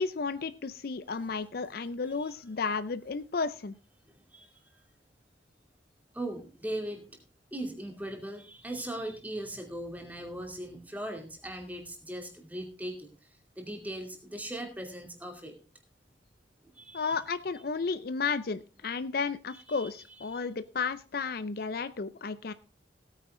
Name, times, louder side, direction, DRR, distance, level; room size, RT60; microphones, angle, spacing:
voice 1, 0.0-3.7 16.9-22.5, left 4 dB, 50° left, 14 dB, 0.5 m, -33 dB
voice 2, 4.1-4.8 6.1-7.2 7.5-13.1 13.6-15.5 16.7-17.2 19.7-19.9 20.3-20.4, right 1 dB, 10° right, 3 dB, 2.5 m, -39 dB
17.0 x 9.2 x 3.7 m, 0.33 s
head